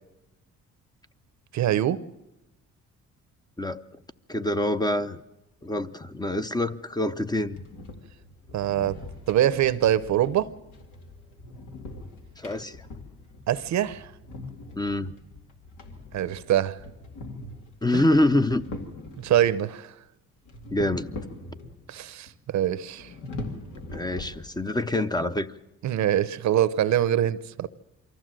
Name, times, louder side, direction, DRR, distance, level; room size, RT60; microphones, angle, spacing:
voice 1, 1.5-2.0 8.5-9.0 9.3-10.5 13.5-14.1 16.1-16.8 17.9-18.0 19.2-19.9 21.9-23.1 25.8-27.7, right 11 dB, 65° right, 0.8 m, -24 dB
voice 2, 4.3-5.2 5.6-7.6 12.4-12.9 14.8-15.1 17.8-18.6 20.7-21.1 23.9-25.5, left 1 dB, 15° left, 0.7 m, -25 dB
sound 1, 7.4-19.6 20.5-22.0 22.3-22.4 22.9-24.8, left 2 dB, 80° left, 2.3 m, -42 dB
23.5 x 14.5 x 7.6 m
cardioid pair, 90°, 30 cm